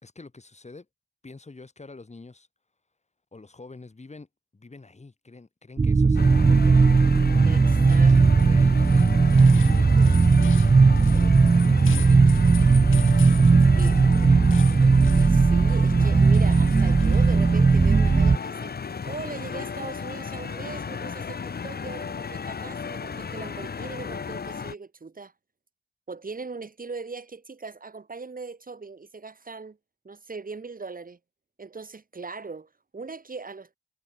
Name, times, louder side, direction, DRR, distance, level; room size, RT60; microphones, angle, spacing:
voice 1, 0.0-0.9 1.2-2.5 3.3-4.3 4.5-10.3 11.0-12.2 13.2-15.1, left 3 dB, 35° left, 3.6 m, -47 dB
sound 1, 5.8-18.4, right 4 dB, 20° right, 0.4 m, -17 dB
sound 2, 6.1-24.7, left 6 dB, 50° left, 1.2 m, -35 dB
voice 2, 7.4-8.5 13.7-14.0 15.2-25.3 26.1-29.8 30.0-31.2 31.6-33.8, right 4 dB, 45° right, 3.6 m, -40 dB
sound 3, 7.9-19.5, left 9 dB, 80° left, 0.8 m, -43 dB
cardioid pair, 60°, 20 cm